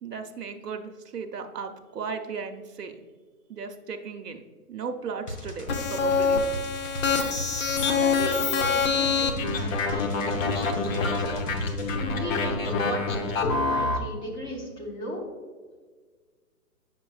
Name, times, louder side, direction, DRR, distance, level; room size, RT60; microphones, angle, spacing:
voice 1, 0.0-2.9 3.5-4.4 4.7-6.4, right 5 dB, 90° right, 6 dB, 0.7 m, -36 dB
sound 1, 5.3-12.0, equal, 90° left, 1.5 m, -38 dB
sound 2, 5.7-14.0, left 4 dB, 55° left, 1.0 m, -26 dB
voice 2, 7.8-11.2 11.9-15.2, left 1 dB, 10° left, -3 dB, 0.9 m, -36 dB
7.7 x 6.0 x 2.3 m, 1.5 s
hypercardioid pair, 135°, 46 cm